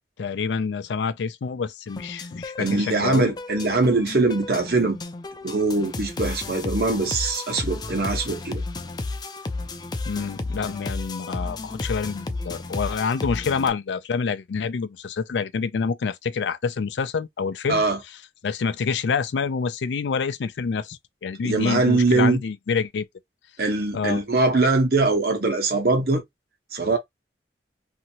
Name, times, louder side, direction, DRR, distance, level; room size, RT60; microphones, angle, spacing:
voice 1, 0.2-3.3 10.1-23.1 23.9-24.2, left 5 dB, 90° left, 0.4 m, -27 dB
sound 1, 1.9-13.7, left 3 dB, 25° left, 0.4 m, -33 dB
voice 2, 2.6-5.0 5.4-8.6 17.7-18.0 21.4-22.4 23.6-26.2 26.7-27.0, right 3 dB, 60° right, 1.1 m, -22 dB
2.9 x 2.6 x 2.8 m
head